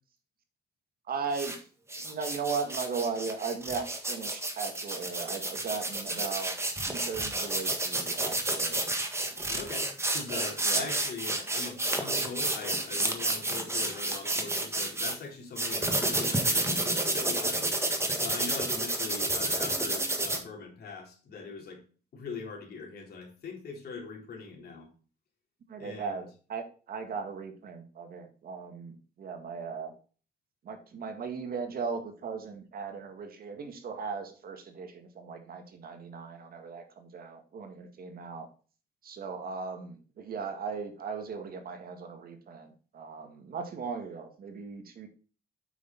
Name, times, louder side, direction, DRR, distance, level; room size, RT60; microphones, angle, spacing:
voice 1, 1.1-1.7 1.9-6.5 6.9-8.9 10.6-10.9 25.7-29.9 30.6-38.5 39.0-45.1, right 5 dB, 55° right, 6 dB, 1.8 m, -37 dB
sound 1, 1.3-1.6 1.9-15.1 15.6-20.4, right 2 dB, 15° right, 1.6 m, -30 dB
voice 2, 9.5-17.7 18.1-21.8 22.1-24.9 25.8-26.3, left 4 dB, 60° left, 0 dB, 3.6 m, -42 dB
8.2 x 6.0 x 4.0 m, 0.38 s
cardioid pair, 105°, 18 cm